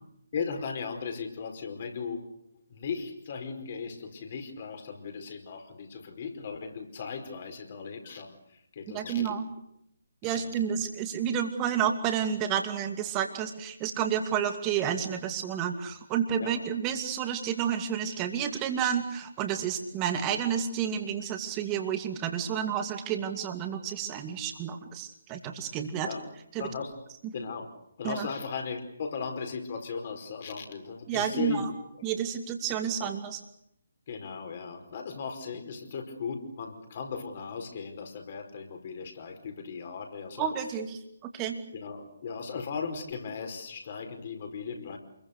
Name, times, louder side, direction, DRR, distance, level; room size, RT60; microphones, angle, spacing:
voice 1, 0.3-2.3 2.7-9.3 10.3-10.5 16.4-16.6 26.0-26.2 26.6-27.0 27.3-27.7 28.0-31.6 32.8-33.1 34.1-40.5 41.7-45.0, left 5 dB, 40° left, 4 dB, 4.9 m, -37 dB
voice 2, 8.9-9.5 10.2-26.1 26.5-26.6 28.0-28.3 31.1-31.7 32.0-33.4 40.4-41.0 41.3-41.6, right 8 dB, 20° right, 6 dB, 2.6 m, -30 dB
28.5 x 22.5 x 6.8 m, 0.76 s
figure-of-eight pair, 140°, 0 cm